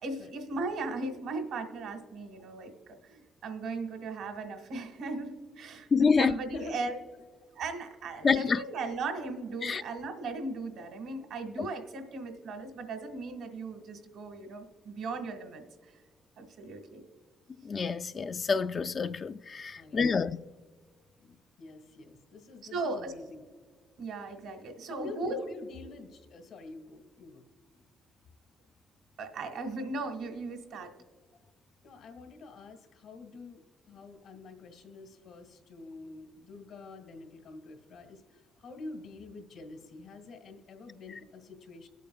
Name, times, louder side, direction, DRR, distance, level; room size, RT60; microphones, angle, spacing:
voice 1, 0.0-7.0 7.5-15.6 16.4-17.0 22.7-23.1 24.0-25.4 29.2-30.9, right 3 dB, 80° right, 1.6 m, -37 dB
voice 2, 5.9-6.3 8.2-8.6 9.6-9.8 11.6-11.7 17.6-20.4, left 5 dB, 40° left, 0.3 m, -27 dB
voice 3, 19.7-20.2 21.2-23.4 24.9-27.4 31.8-41.9, left 3 dB, 80° left, 1.7 m, -47 dB
23.0 x 8.3 x 2.3 m
cardioid pair, 90°, 0 cm